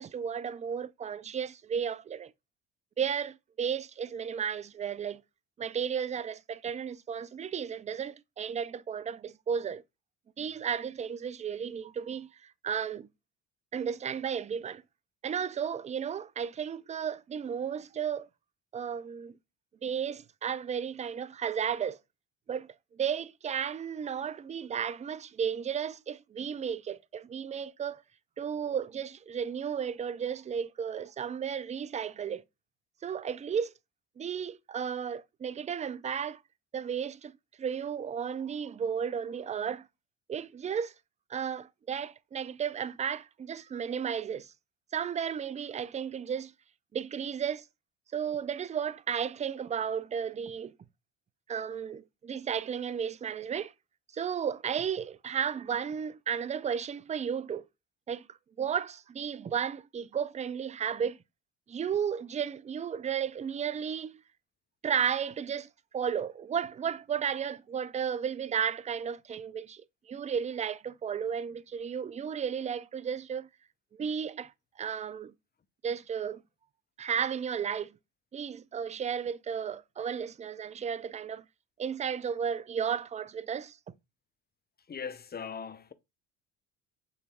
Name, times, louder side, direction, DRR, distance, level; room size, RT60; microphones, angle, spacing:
voice 1, 0.0-2.3 3.0-5.2 5.6-9.8 10.4-13.1 13.7-14.8 15.2-18.3 18.7-19.4 19.8-22.0 22.5-28.0 28.4-32.4 33.0-33.7 34.2-36.4 36.7-39.9 40.3-40.9 41.3-44.5 44.9-46.5 46.9-47.7 48.1-50.8 51.5-53.7 54.1-57.6 58.1-58.3 58.6-61.2 61.7-64.2 64.8-65.7 65.9-73.5 73.9-74.5 74.8-75.3 75.8-76.4 77.0-77.9 78.3-81.4 81.8-83.8, right 7 dB, 20° right, 0.3 m, -34 dB
voice 2, 84.9-85.9, left 6 dB, 25° left, 0.7 m, -39 dB
7.0 x 3.1 x 2.2 m
supercardioid pair, 70°, 41 cm